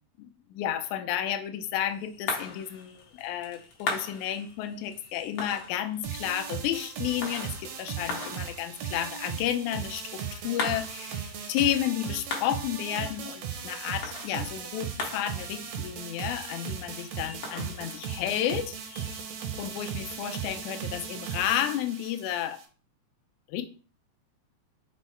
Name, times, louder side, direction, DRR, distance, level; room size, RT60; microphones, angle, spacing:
voice 1, 0.2-11.2 11.5-18.7 19.6-22.6 23.5-23.6, left 11 dB, 85° left, 8 dB, 2.0 m, -32 dB
sound 1, 1.6-19.8, left 4 dB, 65° left, 1.8 m, -41 dB
sound 2, 6.0-22.6, right 7 dB, 75° right, 1.5 m, -37 dB
5.4 x 2.1 x 4.3 m, 0.37 s
omnidirectional pair, 3.5 m